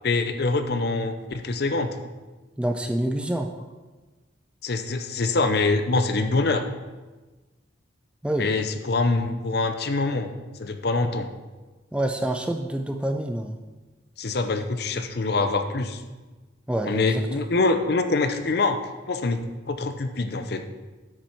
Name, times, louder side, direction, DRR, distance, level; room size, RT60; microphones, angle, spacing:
voice 1, 0.0-1.9 4.6-6.6 8.4-10.3 10.6-11.3 14.2-16.0 16.8-18.8 19.1-19.4 19.7-20.6, left 3 dB, 55° left, 8 dB, 0.6 m, -24 dB
voice 2, 2.6-3.5 8.2-8.5 11.9-13.6 16.7-17.4, right 1 dB, 5° right, 4 dB, 0.4 m, -27 dB
8.5 x 6.2 x 4.5 m, 1.2 s
head